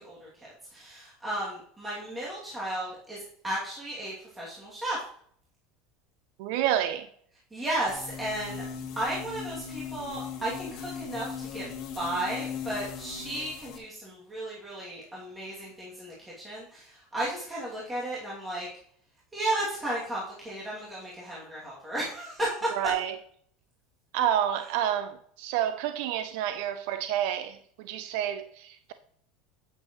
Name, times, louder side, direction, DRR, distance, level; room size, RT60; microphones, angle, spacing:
voice 1, 0.0-5.0 7.5-8.6 9.0-11.7 11.9-18.7 19.3-22.9, right 1 dB, 15° right, 2.5 m, -34 dB
voice 2, 6.4-7.1 22.8-23.2 24.1-28.9, right 11 dB, 70° right, 0.5 m, -29 dB
sound 1, 7.9-13.8, left 6 dB, 55° left, 1.8 m, -39 dB
8.9 x 7.7 x 3.1 m
supercardioid pair, 130°, 0 cm